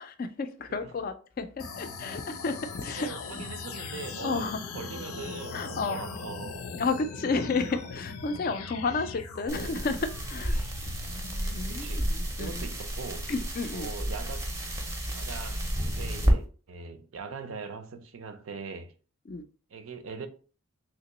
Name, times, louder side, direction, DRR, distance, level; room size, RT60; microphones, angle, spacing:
voice 1, 0.0-3.1 4.2-4.6 5.5-6.1 6.7-10.6 11.5-12.7 13.3-13.9 19.3-19.4, left 4 dB, 40° left, 0.3 m, -32 dB
sound 1, 1.6-11.8, left 4 dB, 90° left, 0.5 m, -40 dB
voice 2, 2.9-6.7 9.5-9.8 11.7-12.1 12.4-13.3 13.7-14.5 15.1-15.6 16.0-18.9 19.7-20.3, right 5 dB, 75° right, 0.5 m, -41 dB
sound 2, 9.5-16.3, equal, 15° right, 0.5 m, -31 dB
3.3 x 2.9 x 3.0 m
head